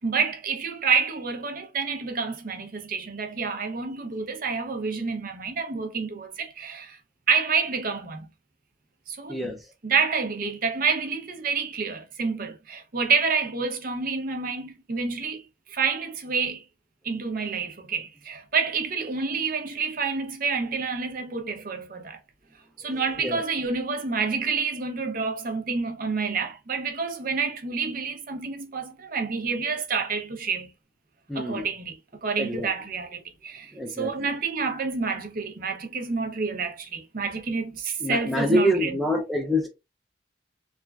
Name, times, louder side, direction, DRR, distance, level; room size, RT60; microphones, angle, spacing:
voice 1, 0.0-7.0 7.3-8.3 9.1-9.6 9.8-16.6 17.0-22.2 22.8-30.7 31.3-39.0, right 5 dB, 50° right, 0.6 m, -28 dB
voice 2, 31.3-31.7 32.4-32.7 33.7-34.1 38.0-39.7, equal, ahead, 0.4 m, -26 dB
3.1 x 2.3 x 2.3 m
head